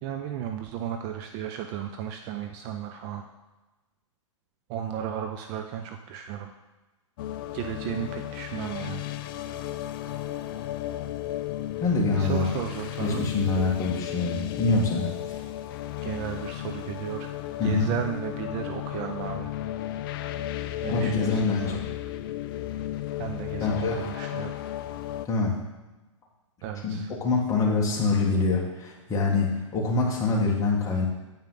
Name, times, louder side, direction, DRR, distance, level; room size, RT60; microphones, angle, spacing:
voice 1, 0.0-3.3 4.7-6.5 7.5-9.1 12.1-13.3 16.0-17.3 17.6-19.5 20.8-21.8 23.2-24.6 26.6-27.1, right 9 dB, 30° right, 6 dB, 0.5 m, -34 dB
sound 1, 7.2-25.3, left 13 dB, 45° left, 0.4 m, -34 dB
voice 2, 11.8-12.5 13.0-15.4 17.6-17.9 20.9-21.9 23.6-24.0 25.2-25.6 26.8-31.1, left 3 dB, 20° left, -2 dB, 1.6 m, -25 dB
8.6 x 5.5 x 3.9 m, 1.1 s
hypercardioid pair, 130°, 17 cm